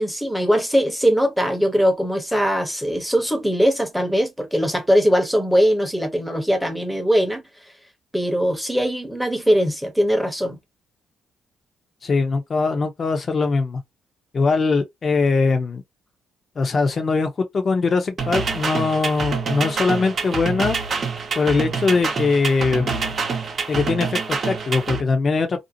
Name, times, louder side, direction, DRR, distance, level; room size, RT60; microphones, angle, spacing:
voice 1, 0.0-7.4 8.1-10.6, equal, ahead, 0.9 m, -20 dB
voice 2, 12.0-13.8 14.3-15.8 16.6-20.8 21.4-23.1 23.7-25.6, left 4 dB, 40° left, 0.8 m, -21 dB
sound 1, 18.2-25.0, right 5 dB, 45° right, 0.7 m, -26 dB
2.6 x 2.0 x 2.7 m
cardioid pair, 90°, 0 cm